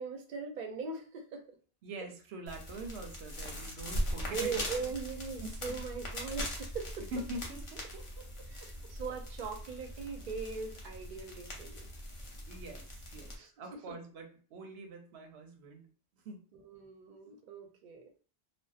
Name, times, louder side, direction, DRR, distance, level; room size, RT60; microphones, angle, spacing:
voice 1, 0.0-1.4 2.0-2.1 4.3-7.1 8.5-11.9 13.4-13.5 16.5-18.0, right 5 dB, 60° right, 4 dB, 0.6 m, -40 dB
voice 2, 1.8-4.7 5.4-5.6 7.1-8.3 8.6-8.7 12.5-15.8 16.1-16.4, right 2 dB, 90° right, 4 dB, 0.8 m, -44 dB
sound 1, 2.5-13.4, equal, 40° left, 0.6 m, -41 dB
2.6 x 2.0 x 2.3 m, 0.39 s
omnidirectional pair, 1.0 m